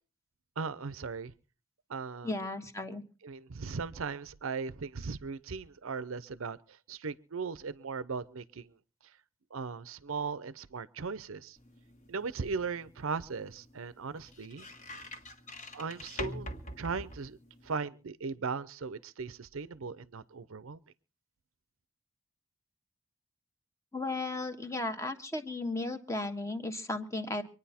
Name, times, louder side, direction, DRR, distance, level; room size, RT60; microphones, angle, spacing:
voice 1, 0.6-1.3 1.9-2.3 3.2-6.6 6.9-8.8 9.5-11.6 12.1-14.7 15.7-17.4 17.6-20.8, right 5 dB, 80° right, 17 dB, 0.7 m, -38 dB
voice 2, 2.2-3.0 23.9-27.4, left 2 dB, 15° left, 7 dB, 1.3 m, -35 dB
sound 1, 11.6-17.8, left 1 dB, 35° left, 1.5 m, -45 dB
25.0 x 9.8 x 4.3 m, 0.36 s
head